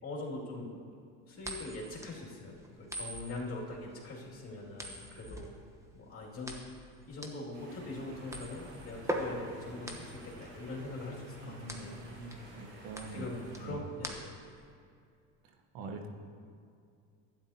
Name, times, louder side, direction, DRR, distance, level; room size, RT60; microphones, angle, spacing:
voice 1, 0.0-0.7 1.3-5.5 5.9-6.6 7.1-11.9 12.3-14.3, left 2 dB, 35° left, -3 dB, 2.5 m, -42 dB
sound 1, 1.4-14.6, right 1 dB, 5° right, 1.0 m, -43 dB
sound 2, 7.5-13.7, right 1 dB, 85° right, 2.6 m, -51 dB
voice 2, 11.4-13.3 13.6-13.8 15.7-16.1, right 3 dB, 65° right, 4 dB, 1.2 m, -44 dB
12.0 x 9.4 x 2.8 m, 2.3 s
supercardioid pair, 90°, 39 cm